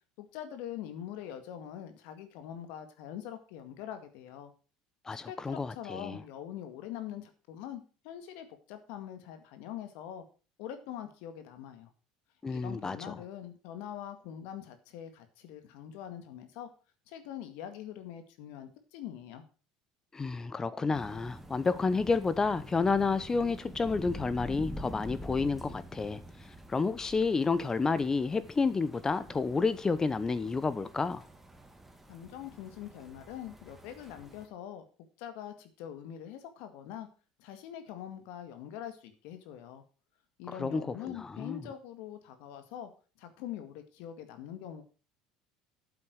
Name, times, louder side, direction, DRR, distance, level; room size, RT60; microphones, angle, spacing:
voice 1, 0.2-4.5 5.3-10.2 10.6-11.9 12.5-16.7 17.1-19.4 32.1-34.8 35.2-37.1 37.4-39.8 40.4-42.9 43.2-44.8, left 10 dB, 75° left, 1.9 m, -43 dB
voice 2, 5.1-6.2 12.4-13.2 20.1-26.2 26.7-31.2 40.6-41.6, left 4 dB, 20° left, 0.9 m, -30 dB
sound 1, 20.9-34.5, equal, 10° right, 1.9 m, -47 dB
8.9 x 7.7 x 6.4 m
supercardioid pair, 90°, 3 cm